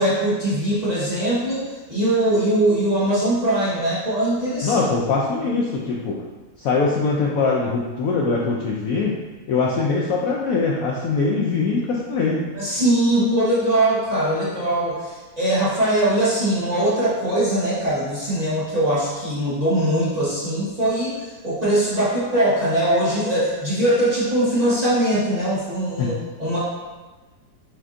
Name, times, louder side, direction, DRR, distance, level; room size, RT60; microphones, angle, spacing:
voice 1, 0.0-4.7 12.5-21.1 21.4-26.6, right 1 dB, 30° right, -10 dB, 0.9 m, -21 dB
voice 2, 4.6-6.2 6.6-9.2 9.5-12.4 26.0-26.1, left 4 dB, 70° left, -3 dB, 0.8 m, -22 dB
7.5 x 2.6 x 2.5 m, 1.2 s
omnidirectional pair, 1.9 m